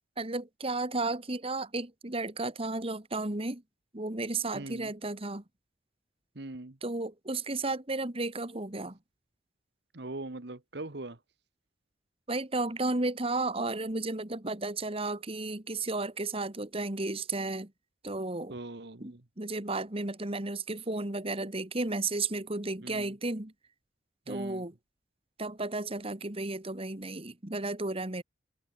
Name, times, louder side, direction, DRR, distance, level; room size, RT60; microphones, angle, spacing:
voice 1, 0.2-3.6 3.9-5.4 6.8-9.0 12.3-17.7 18.0-18.6 19.0-23.5 24.3-24.7 25.4-28.2, right 2 dB, 30° right, 1.9 m, -33 dB
voice 2, 4.5-4.9 6.3-6.8 9.9-11.2 18.5-19.2 22.8-23.2 24.3-24.6, right 2 dB, 60° right, 1.5 m, -41 dB
head